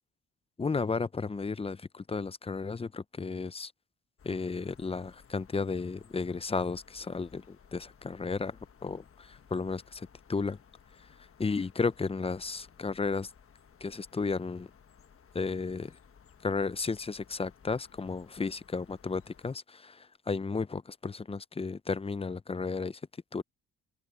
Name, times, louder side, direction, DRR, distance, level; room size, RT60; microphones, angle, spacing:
voice 1, 0.6-3.7 4.2-8.5 8.8-10.6 11.4-13.3 13.8-14.7 15.3-15.9 16.4-23.0 23.3-23.4, left 4 dB, 20° left, 0.6 m, -33 dB
sound 1, 4.2-19.5, left 7 dB, 40° left, 1.4 m, -59 dB
open air
cardioid pair, 85°, 33 cm